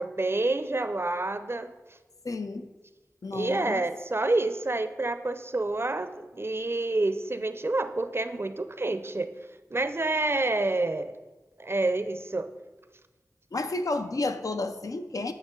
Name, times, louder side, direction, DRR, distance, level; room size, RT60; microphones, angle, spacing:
voice 1, 0.0-1.7 3.3-9.3 9.7-11.1 11.6-12.5, right 2 dB, 45° right, 10 dB, 0.5 m, -28 dB
voice 2, 2.2-2.7 3.2-3.9 13.5-15.3, left 2 dB, 75° left, 8 dB, 0.5 m, -31 dB
8.8 x 5.8 x 3.7 m, 1.2 s
wide cardioid pair, 45°, 6 cm